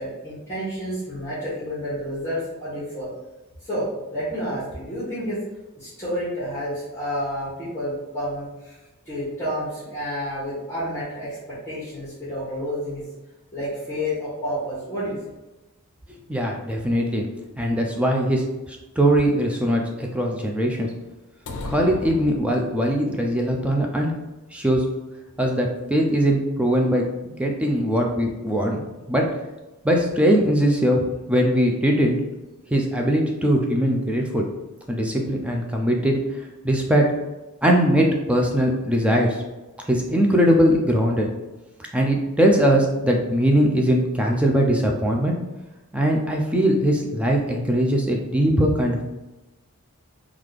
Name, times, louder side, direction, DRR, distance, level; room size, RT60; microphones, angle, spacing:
voice 1, 0.0-3.1 3.6-5.4 5.8-8.8 9.0-11.4 11.6-13.0 13.5-15.2, equal, 10° left, -12 dB, 1.2 m, -30 dB
voice 2, 16.1-17.3 17.6-20.9 21.7-24.1 24.5-24.8 25.4-27.0 27.4-28.8 29.1-29.2 29.8-32.2 32.7-34.4 34.9-36.2 36.6-37.1 37.6-39.4 39.9-41.3 41.9-45.3 45.9-49.1, equal, 5° right, 0 dB, 0.4 m, -21 dB
sound 1, 21.5-23.1, left 2 dB, 80° left, 0.4 m, -35 dB
3.7 x 2.4 x 3.2 m, 1.1 s
head